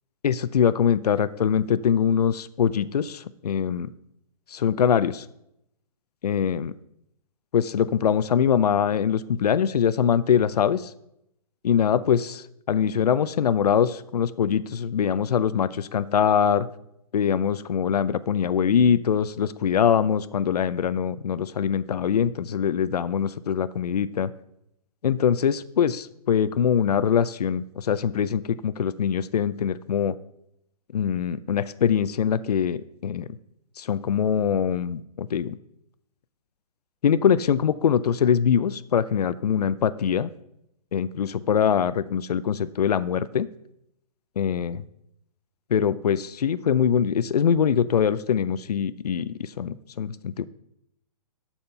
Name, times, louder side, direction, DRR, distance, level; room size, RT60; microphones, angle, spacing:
voice 1, 0.2-3.9 4.5-5.3 6.2-6.7 7.5-10.9 11.6-16.7 17.1-24.3 25.0-30.1 30.9-33.3 33.8-35.6 37.0-40.3 40.9-43.5 44.4-44.8 45.7-50.4, left 8 dB, 85° left, 15 dB, 0.5 m, -23 dB
12.5 x 4.4 x 5.5 m, 0.79 s
hypercardioid pair, 140°, 20 cm